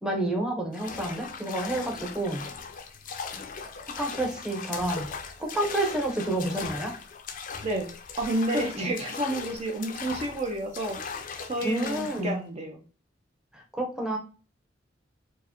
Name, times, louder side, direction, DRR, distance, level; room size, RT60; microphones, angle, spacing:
voice 1, 0.0-2.5 4.0-5.1 5.4-6.9 8.8-8.9 11.6-12.3 13.5-14.2, right 1 dB, 5° right, 0 dB, 0.8 m, -29 dB
sound 1, 0.7-12.3, left 5 dB, 45° left, 0.5 m, -39 dB
voice 2, 8.2-12.8, right 1 dB, 35° right, 2 dB, 0.6 m, -30 dB
4.5 x 2.1 x 2.9 m, 0.35 s
head